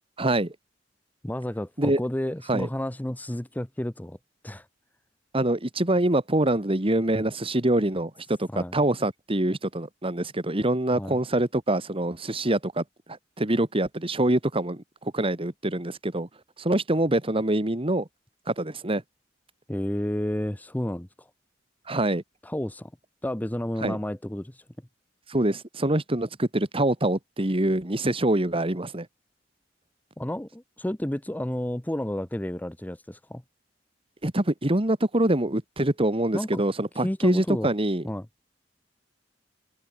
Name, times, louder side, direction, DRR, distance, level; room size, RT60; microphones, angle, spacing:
voice 1, 0.2-0.5 1.8-2.0 2.5-2.7 5.3-12.8 13.4-16.3 16.6-18.1 18.5-19.0 21.9-22.2 23.8-24.0 25.3-29.1 34.2-38.0, right 1 dB, 30° right, 2.0 m, -25 dB
voice 2, 1.2-4.2 4.4-4.7 8.5-8.8 10.9-11.2 19.7-21.3 22.4-22.9 23.2-24.6 30.2-33.4 36.3-36.6 37.0-37.7 38.0-38.3, left 1 dB, 10° left, 0.8 m, -31 dB
head